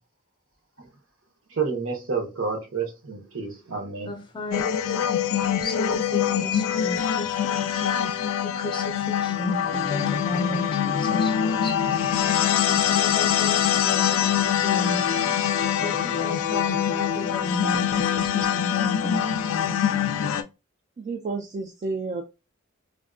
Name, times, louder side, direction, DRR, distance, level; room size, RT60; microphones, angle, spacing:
voice 1, 1.5-4.1, right 5 dB, 80° right, 0.8 m, -29 dB
voice 2, 4.0-4.7 5.6-7.8 8.6-11.7 12.7-15.3 15.8-19.2, left 1 dB, 25° left, 0.5 m, -34 dB
sound 1, 4.5-20.4, left 9 dB, 80° left, 0.3 m, -24 dB
voice 3, 21.0-22.2, right 3 dB, 35° right, 0.3 m, -31 dB
3.5 x 2.2 x 2.4 m
head